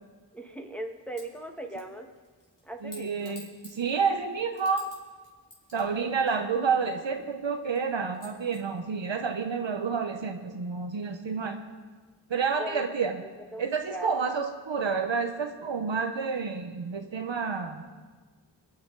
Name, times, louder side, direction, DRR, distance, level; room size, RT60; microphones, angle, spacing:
voice 1, 0.3-2.1 2.6-3.4 5.9-6.4 12.6-12.8 13.5-13.6 13.9-14.1, right 1 dB, 5° left, 1 dB, 1.8 m, -39 dB
sound 1, 1.1-1.4 1.8-5.0 5.2-7.2 7.7-7.8 8.1-8.6, left 1 dB, 45° left, 3.6 m, -51 dB
voice 2, 2.8-4.9 5.7-11.6 12.3-13.2 13.6-17.8, right 5 dB, 80° right, 5 dB, 1.1 m, -29 dB
23.5 x 9.5 x 4.0 m, 1.4 s
cardioid pair, 50°, 44 cm